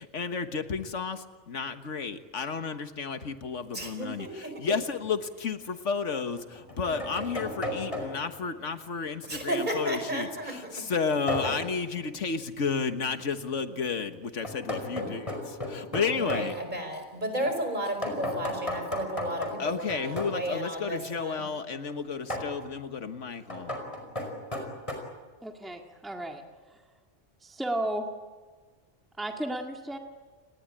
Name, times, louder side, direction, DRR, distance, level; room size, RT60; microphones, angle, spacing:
voice 1, 0.0-16.6 19.6-23.8, left 5 dB, 85° left, 8 dB, 1.7 m, -32 dB
voice 2, 3.7-4.7 9.3-10.7 14.9-15.2 16.1-21.4, right 1 dB, 40° right, 5 dB, 5.3 m, -33 dB
sound 1, 5.0-5.1 6.4-8.4 11.3-11.8 14.4-16.5 18.0-20.4 22.3-22.6 23.5-24.9, left 1 dB, 25° left, 5.2 m, -34 dB
voice 3, 25.4-26.4 26.7-26.8 27.4-28.1 29.2-30.0, right 1 dB, ahead, 2 dB, 1.9 m, -33 dB
30.0 x 19.5 x 8.8 m, 1.4 s
omnidirectional pair, 1.2 m